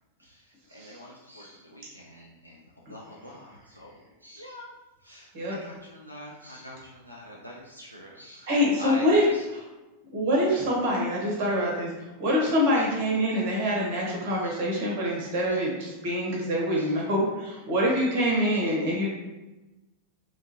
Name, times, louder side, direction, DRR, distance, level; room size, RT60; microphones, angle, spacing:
voice 1, 0.2-2.6 2.9-3.9 4.2-4.7 5.0-9.4 12.7-12.9 14.4-14.5 15.5-15.6 16.8-17.0, left 1 dB, 90° right, -3 dB, 0.3 m, -44 dB
voice 2, 8.5-9.2 10.1-11.9 12.2-19.1, equal, 50° right, -2 dB, 1.0 m, -25 dB
3.6 x 2.5 x 2.8 m, 1.1 s
figure-of-eight pair, 90°, 0 cm